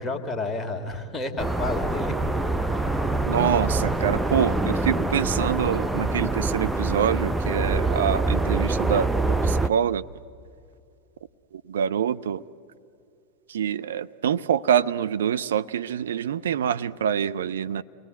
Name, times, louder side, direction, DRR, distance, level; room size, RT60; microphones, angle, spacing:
voice 1, 0.0-2.1, left 3 dB, 15° left, 4 dB, 1.9 m, -30 dB
sound 1, 1.4-9.7, right 2 dB, 5° right, 0.6 m, -25 dB
voice 2, 3.3-10.0 11.5-12.4 13.5-17.8, right 8 dB, 60° right, 12 dB, 0.6 m, -25 dB
28.0 x 20.0 x 8.1 m, 2.5 s
figure-of-eight pair, 90°, 0 cm